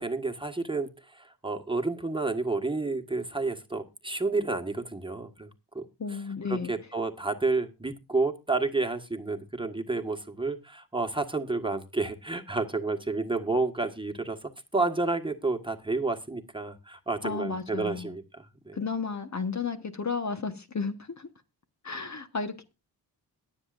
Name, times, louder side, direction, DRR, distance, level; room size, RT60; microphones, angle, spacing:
voice 1, 0.0-5.5 5.7-5.8 6.5-18.8, right 3 dB, 10° right, 1.6 m, -30 dB
voice 2, 6.0-6.7 17.2-18.1 18.7-21.3 21.8-22.6, left 5 dB, 40° left, 1.4 m, -33 dB
21.5 x 7.4 x 2.6 m
cardioid pair, 60°, 44 cm